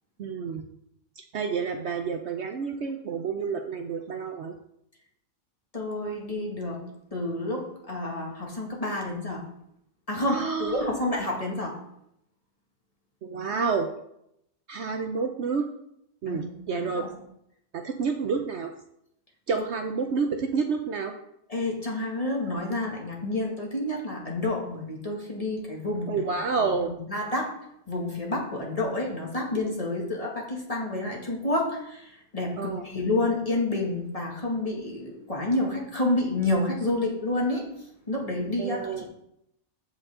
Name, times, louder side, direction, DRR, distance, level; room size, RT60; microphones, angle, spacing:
voice 1, 0.2-0.6 1.3-4.5 10.3-10.9 13.2-13.9 14.7-15.7 16.2-17.1 17.7-18.7 19.5-21.1 26.1-26.9 32.6-32.8 38.6-39.1, right 5 dB, 60° right, 5 dB, 0.9 m, -29 dB
voice 2, 5.7-6.8 7.1-9.4 10.1-11.8 16.3-16.4 16.7-17.1 19.6-19.7 21.5-26.2 26.6-27.5 27.9-37.6 38.1-39.1, left 2 dB, 25° left, -2 dB, 2.1 m, -29 dB
14.5 x 5.3 x 3.7 m, 0.78 s
omnidirectional pair, 1.4 m